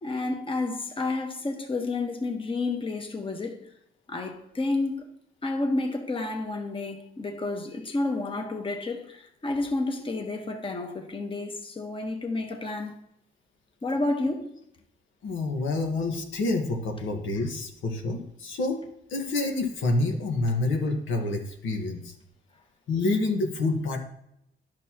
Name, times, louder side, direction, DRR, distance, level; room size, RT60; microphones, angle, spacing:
voice 1, 0.0-3.6 4.1-5.1 5.4-13.0 13.8-14.5, left 2 dB, 25° left, 1.3 m, -30 dB
voice 2, 15.2-18.8 19.1-22.1 22.9-24.0, left 2 dB, 80° left, 1.5 m, -27 dB
10.5 x 6.4 x 2.9 m
cardioid pair, 90°, 20 cm